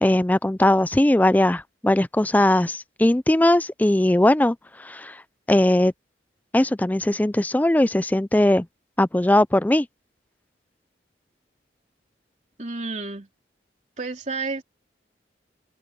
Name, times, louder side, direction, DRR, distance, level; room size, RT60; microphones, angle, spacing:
voice 1, 0.0-5.2 5.5-5.9 6.5-8.7 9.0-9.9, left 1 dB, 10° left, 0.4 m, -19 dB
voice 2, 12.6-13.3 14.0-14.6, right 3 dB, 40° right, 3.2 m, -30 dB
head